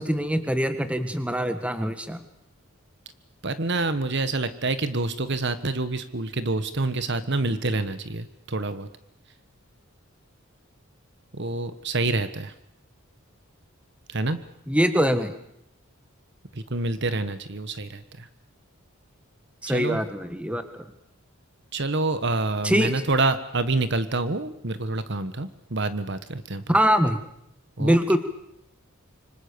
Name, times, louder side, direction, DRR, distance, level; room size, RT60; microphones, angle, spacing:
voice 1, 0.0-2.2 14.7-15.3 19.6-20.9 22.6-22.9 26.7-27.2 27.8-28.2, equal, 5° right, 9 dB, 1.8 m, -23 dB
voice 2, 3.4-8.9 11.3-12.5 14.1-14.4 16.7-18.0 19.7-20.0 21.7-26.6 27.8-28.0, right 2 dB, 55° right, 12 dB, 1.4 m, -27 dB
26.5 x 25.0 x 6.9 m, 0.76 s
head